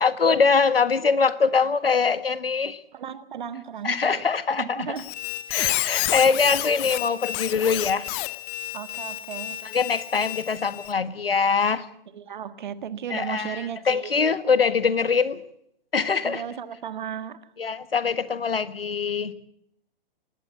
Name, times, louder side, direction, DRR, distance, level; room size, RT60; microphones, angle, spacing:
voice 1, 0.0-2.8 3.8-5.0 5.5-8.1 9.6-11.8 13.1-15.4 15.9-16.4 17.6-19.3, left 5 dB, 75° left, 14 dB, 1.6 m, -23 dB
voice 2, 2.9-4.3 4.6-5.1 5.6-5.9 8.7-9.6 12.1-14.1 16.2-17.4, right 8 dB, 55° right, 14 dB, 1.6 m, -35 dB
Squeak, 5.0-10.9, left 19 dB, 25° left, 0.9 m, -30 dB
20.0 x 16.0 x 8.3 m, 0.72 s
figure-of-eight pair, 120°, 29 cm